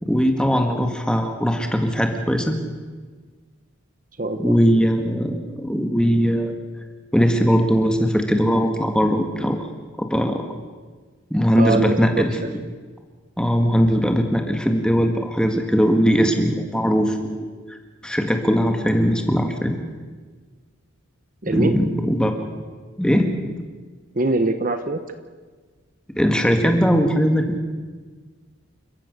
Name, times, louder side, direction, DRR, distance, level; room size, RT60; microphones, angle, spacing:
voice 1, 0.0-2.6 4.4-6.6 7.1-9.7 10.0-10.4 11.3-12.3 13.4-17.3 17.7-17.8 18.0-19.8 21.5-22.3 23.0-23.3 26.2-27.6, equal, 5° left, 4 dB, 1.9 m, -20 dB
voice 2, 4.2-4.5 11.5-12.5 21.4-21.7 24.1-25.0, right 2 dB, 40° right, 9 dB, 1.0 m, -23 dB
29.5 x 15.0 x 6.7 m, 1.4 s
head